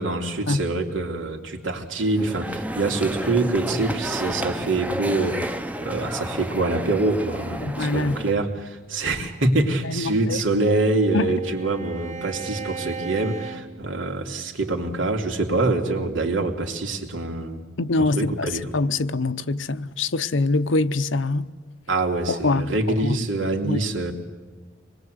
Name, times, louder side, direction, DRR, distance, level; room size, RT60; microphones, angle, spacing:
voice 1, 0.0-17.6 18.0-18.7 21.9-24.1, right 2 dB, 85° right, 3.2 m, -25 dB
sound 1, 2.0-8.3, right 1 dB, 10° right, 0.7 m, -31 dB
voice 2, 7.6-8.2 9.8-10.4 11.1-11.3 17.8-21.5 22.4-22.7 23.0-23.2 23.6-23.8, left 3 dB, 80° left, 0.9 m, -24 dB
Bowed string instrument, 10.0-14.5, right 5 dB, 35° right, 1.2 m, -38 dB
25.5 x 21.0 x 8.0 m
head